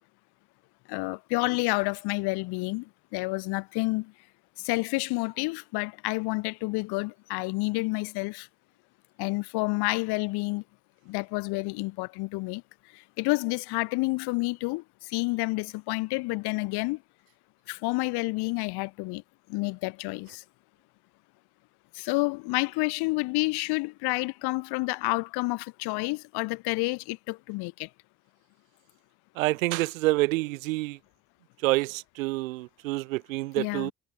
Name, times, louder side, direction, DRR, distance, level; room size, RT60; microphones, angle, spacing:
voice 1, 0.9-4.1 4.6-8.5 9.2-10.6 11.0-12.6 12.9-17.0 17.7-19.2 19.5-20.4 21.9-27.9 33.6-33.9, left 25 dB, 75° left, 2.8 m, -29 dB
voice 2, 29.4-31.0 31.6-33.9, right 20 dB, 90° right, 1.1 m, -27 dB
hypercardioid pair, 65°, 39 cm